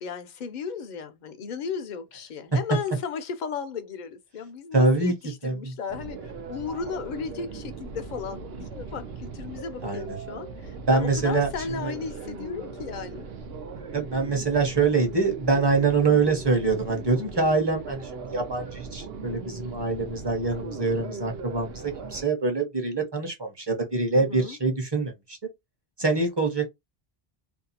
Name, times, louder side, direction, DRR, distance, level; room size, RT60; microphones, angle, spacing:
voice 1, 0.0-13.3 24.1-24.6, left 6 dB, 55° left, 0.6 m, -35 dB
voice 2, 4.7-5.1 5.4-5.7 9.8-10.2 10.9-11.9 13.9-25.4 26.0-26.7, right 3 dB, 25° right, 0.8 m, -25 dB
sound 1, 5.9-22.2, right 4 dB, 75° right, 0.8 m, -39 dB
2.6 x 2.3 x 2.7 m
omnidirectional pair, 1.0 m